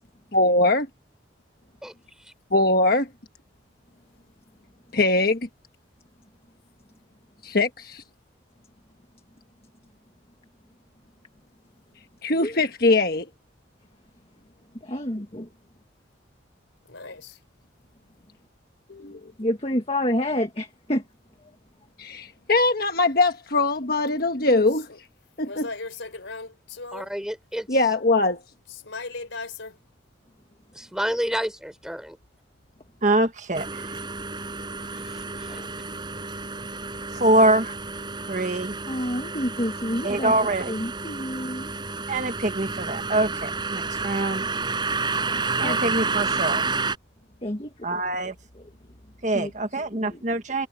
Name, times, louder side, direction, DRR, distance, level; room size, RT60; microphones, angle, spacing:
voice 1, 0.3-0.9 2.5-3.1 4.9-5.4 7.4-8.0 12.2-13.3 18.9-19.2 22.0-24.9 25.4-25.7 27.7-28.4, left 2 dB, 50° left, 1.4 m, -21 dB
voice 2, 14.8-15.5 19.4-21.0 35.5-35.7 38.9-40.3 40.7-41.7 45.6-45.8 47.4-47.7 49.3-49.5 49.9-50.2, left 1 dB, 30° left, 1.7 m, -28 dB
voice 3, 16.9-17.3 24.9-25.0 25.5-27.1 28.7-29.7, left 3 dB, 85° left, 3.9 m, -37 dB
voice 4, 26.9-27.8 30.7-32.2 34.9-35.6, equal, 5° right, 4.9 m, -31 dB
voice 5, 33.0-33.9 37.1-37.8 38.3-38.7 40.0-40.8 42.1-44.5 45.6-46.7 47.8-48.3 49.2-50.7, right 2 dB, 40° right, 1.5 m, -24 dB
sound 1, 33.5-47.0, right 4 dB, 25° right, 5.0 m, -30 dB
head